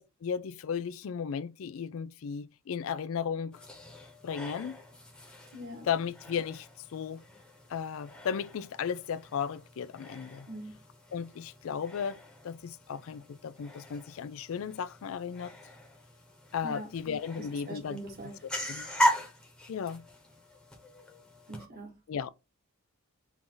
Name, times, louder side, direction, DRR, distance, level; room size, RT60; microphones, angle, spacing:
voice 1, 0.0-3.6 4.2-4.8 5.8-7.2 7.7-10.5 11.1-15.5 16.5-18.0 18.7-18.9 19.7-20.0 22.1-22.3, left 7 dB, 70° left, 0.4 m, -35 dB
sound 1, 3.5-21.6, equal, 5° left, 1.0 m, -39 dB
voice 2, 5.5-5.9 10.5-10.7 16.6-16.9 17.7-18.4 21.5-21.9, right 1 dB, 50° right, 1.6 m, -42 dB
4.6 x 2.6 x 3.8 m
head